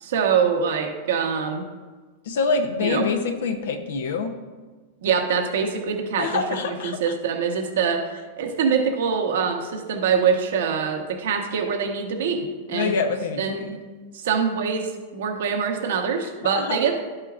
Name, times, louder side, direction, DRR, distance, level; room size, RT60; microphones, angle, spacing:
voice 1, 0.0-1.6 2.8-3.1 5.0-12.9 13.4-13.7 14.1-17.0, right 6 dB, 80° right, 3 dB, 1.1 m, -24 dB
voice 2, 2.3-4.3 6.1-7.1 12.7-13.4 16.5-16.8, left 4 dB, 80° left, 5 dB, 0.7 m, -25 dB
11.0 x 6.5 x 2.5 m, 1.4 s
supercardioid pair, 140°, 0 cm